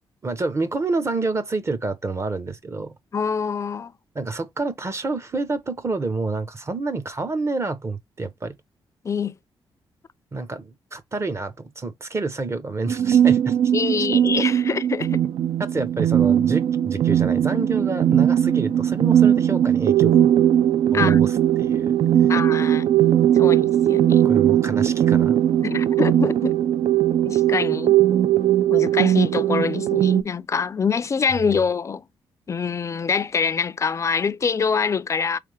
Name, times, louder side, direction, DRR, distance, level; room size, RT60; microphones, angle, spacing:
voice 1, 0.2-2.9 4.1-8.6 10.3-13.7 15.6-20.2 20.9-22.3 24.2-25.4, right 3 dB, 30° right, 0.8 m, -28 dB
voice 2, 3.1-3.9 9.0-9.3 13.7-15.2 20.9-21.2 22.3-22.9 23.3-24.3 25.6-26.6 27.2-28.0 28.7-32.0 32.5-35.4, left 5 dB, 35° left, 0.4 m, -25 dB
sound 1, 12.9-30.2, right 11 dB, 65° right, 0.4 m, -19 dB
3.7 x 3.3 x 3.3 m
cardioid pair, 95°, 9 cm